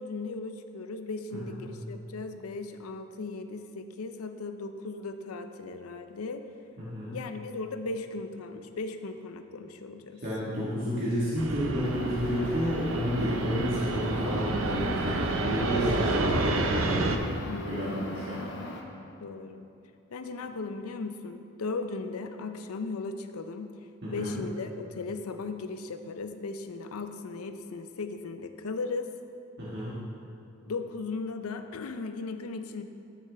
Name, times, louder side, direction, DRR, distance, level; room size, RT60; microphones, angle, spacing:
voice 1, 0.0-6.5 7.1-10.2 17.4-18.1 19.2-19.7 20.1-23.7 24.1-29.1 30.7-32.8, left 3 dB, 90° left, 8 dB, 0.5 m, -37 dB
voice 2, 6.8-7.2 10.2-17.1 17.6-18.4 24.0-24.4 29.6-30.0, equal, 50° right, -10 dB, 1.5 m, -31 dB
Fixed-wing aircraft airplane, 11.4-17.2, right 2 dB, 70° right, 0.6 m, -30 dB
sound 1, 11.8-18.8, left 1 dB, 55° left, 0.8 m, -40 dB
11.5 x 6.5 x 3.4 m, 2.6 s
head